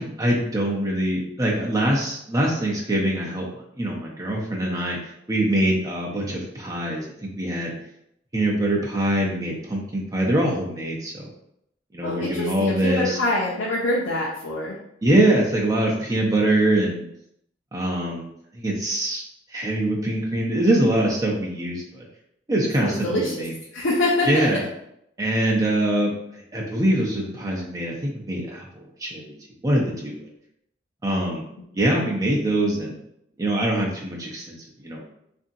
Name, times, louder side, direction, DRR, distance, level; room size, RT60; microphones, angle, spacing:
voice 1, 0.0-3.5 3.8-5.0 5.3-7.1 7.4-7.7 8.3-11.2 11.9-13.2 15.0-17.0 17.7-19.2 19.5-22.0 22.5-23.5 24.3-24.6 25.2-26.1 26.5-29.3 29.6-30.2 31.0-31.4 31.7-32.9 33.4-34.5 34.8-35.1, right 1 dB, 20° right, -2 dB, 0.5 m, -23 dB
voice 2, 12.0-14.7 22.8-23.4 23.7-24.5, left 1 dB, 80° left, -5 dB, 0.5 m, -25 dB
2.8 x 2.6 x 2.5 m, 0.76 s
head